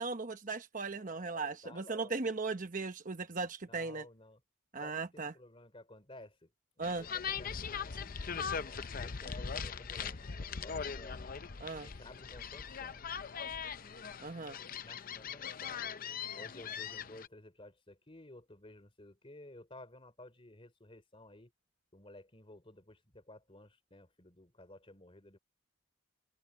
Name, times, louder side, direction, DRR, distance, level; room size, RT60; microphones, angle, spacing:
voice 1, 0.0-4.1 4.7-5.3 6.8-7.0 11.6-11.9 14.2-14.6, right 4 dB, 40° right, 1.0 m, -37 dB
voice 2, 1.1-2.1 3.7-4.4 4.8-6.5 6.8-8.0 8.4-11.3 11.7-13.0 14.7-15.8 16.3-21.5 21.9-25.4, left 1 dB, 25° left, 3.1 m, -55 dB
sound 1, 6.8-17.3, left 6 dB, 40° left, 0.6 m, -40 dB
head